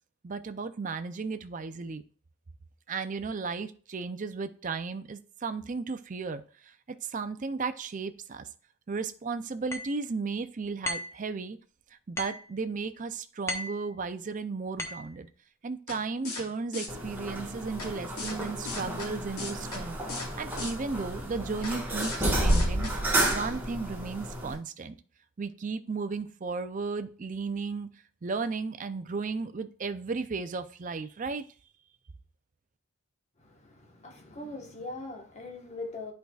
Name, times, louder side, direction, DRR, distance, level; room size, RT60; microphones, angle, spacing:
voice 1, 0.2-2.0 2.9-6.7 7.0-8.5 8.9-11.6 12.1-15.3 15.6-20.0 20.4-22.9 23.3-24.9 25.4-27.9 28.2-31.4, right 4 dB, 35° right, 0.4 m, -34 dB
sound 1, 9.7-10.0 10.9-11.2 12.2-12.5 13.5-13.8 14.8-15.1, left 1 dB, 10° left, 0.8 m, -35 dB
sound 2, 15.9-16.0 16.2-16.4 16.7-16.9 17.8-17.9 18.2-18.4 18.6-19.1 19.4-19.8 20.1-20.3 20.6-20.7 21.6-21.7 22.0-22.2 22.5-22.9 23.2-23.3, left 3 dB, 80° left, 2.5 m, -36 dB
sound 3, 16.9-24.5, right 1 dB, 10° right, 1.4 m, -31 dB
voice 2, 33.4-36.1, left 2 dB, 30° left, 1.2 m, -41 dB
10.5 x 4.7 x 2.3 m
head